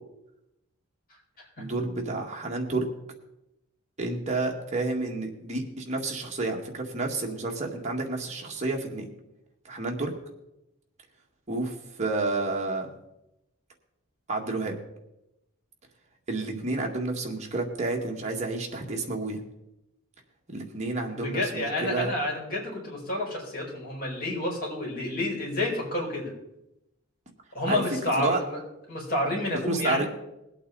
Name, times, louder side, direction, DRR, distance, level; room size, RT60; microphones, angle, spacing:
voice 1, 1.6-2.9 4.0-9.1 9.7-10.1 11.5-12.9 14.3-14.7 16.3-19.4 20.5-22.1 27.7-27.8 28.2-28.4 29.6-30.0, right 3 dB, 30° right, 0 dB, 1.9 m, -30 dB
voice 2, 21.1-26.3 27.5-28.6 28.9-30.1, left 1 dB, 45° left, -3 dB, 4.8 m, -29 dB
20.0 x 8.5 x 4.0 m, 0.89 s
head